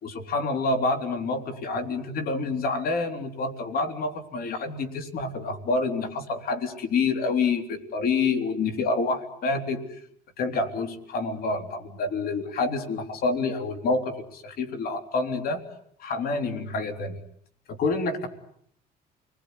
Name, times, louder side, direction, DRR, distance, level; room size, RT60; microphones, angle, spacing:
voice 1, 0.0-9.8 10.4-15.6 16.0-17.2 17.8-18.3, left 3 dB, 60° left, 8 dB, 3.6 m, -27 dB
29.0 x 21.0 x 9.6 m, 0.69 s
cardioid pair, 110°, 17 cm